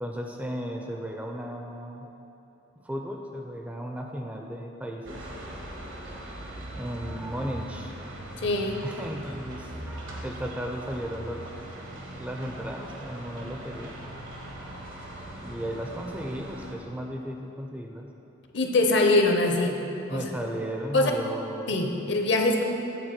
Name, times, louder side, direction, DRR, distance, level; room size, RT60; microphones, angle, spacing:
voice 1, 0.0-2.1 2.8-5.3 6.8-8.0 8.8-11.7 12.2-14.0 15.4-18.1 20.1-21.8, equal, 5° right, 2 dB, 0.4 m, -35 dB
sound 1, 5.0-16.7, right 1 dB, 80° right, 1.1 m, -40 dB
voice 2, 8.4-8.8 18.5-19.8 20.1-20.3 20.9-21.1 21.7-22.6, left 2 dB, 60° left, 3 dB, 0.7 m, -23 dB
9.0 x 3.8 x 6.5 m, 3.0 s
head